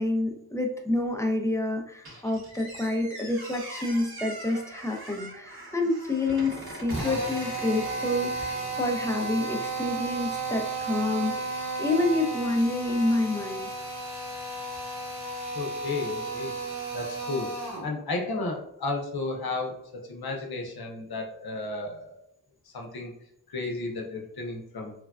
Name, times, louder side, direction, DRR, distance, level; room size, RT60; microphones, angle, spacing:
voice 1, 0.0-11.4 11.8-13.7, left 2 dB, 10° left, 2 dB, 0.5 m, -28 dB
Squeak, 2.0-8.9, right 1 dB, 80° right, 1.4 m, -43 dB
Drill, 6.9-17.9, right 3 dB, 45° right, 0.9 m, -33 dB
voice 2, 15.5-16.5 16.9-17.5 17.8-19.8 20.1-22.2 22.7-23.1 23.5-24.9, left 3 dB, 75° left, 1 dB, 0.7 m, -33 dB
3.2 x 2.2 x 2.3 m, 0.75 s
wide cardioid pair, 55°, 37 cm